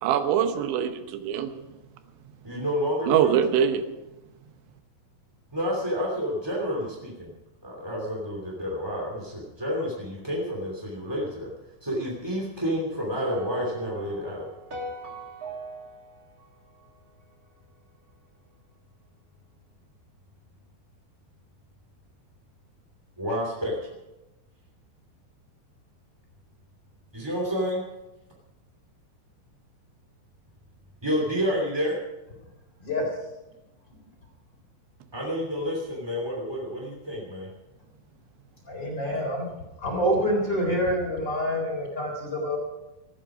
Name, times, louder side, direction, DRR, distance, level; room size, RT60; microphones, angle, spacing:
voice 1, 0.0-1.5 3.1-3.9, right 9 dB, 75° right, 9 dB, 3.2 m, -23 dB
voice 2, 2.4-3.6 5.5-7.3 7.6-11.5 11.8-14.4 23.2-23.7 27.1-27.8 31.0-32.0 35.1-37.5, equal, 10° right, -2 dB, 1.4 m, -29 dB
sound 1, 13.3-17.6, right 2 dB, 35° right, 1.5 m, -40 dB
voice 3, 38.7-39.5 39.8-42.6, equal, 25° left, 0 dB, 4.0 m, -26 dB
18.5 x 14.0 x 5.1 m, 1.0 s
omnidirectional pair, 5.6 m